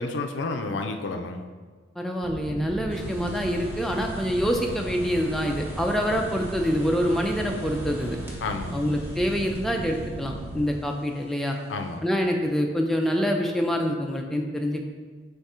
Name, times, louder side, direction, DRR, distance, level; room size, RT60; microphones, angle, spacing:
voice 1, 0.0-1.4 8.4-8.8 11.7-12.1, left 3 dB, 90° left, 6 dB, 0.4 m, -30 dB
voice 2, 2.0-8.2 8.7-11.6 12.0-14.9, equal, ahead, 1 dB, 0.3 m, -26 dB
sound 1, 2.2-10.7, right 2 dB, 85° right, 0.4 m, -37 dB
sound 2, 2.9-12.0, right 1 dB, 15° right, 0.8 m, -46 dB
3.5 x 3.4 x 4.2 m, 1.4 s
head